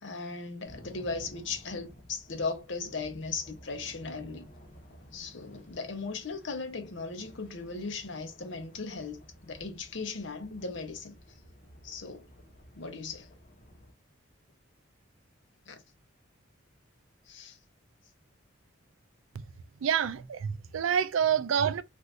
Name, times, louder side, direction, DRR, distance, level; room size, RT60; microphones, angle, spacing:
voice 1, 0.0-4.5 5.1-11.2 11.8-12.3 12.8-13.3 15.7-15.8 17.3-17.6, left 4 dB, 65° left, 0.8 m, -37 dB
sound 1, 0.6-13.9, equal, 45° left, 0.9 m, -54 dB
voice 2, 19.8-21.8, right 8 dB, 80° right, 0.4 m, -27 dB
2.6 x 2.6 x 3.3 m
head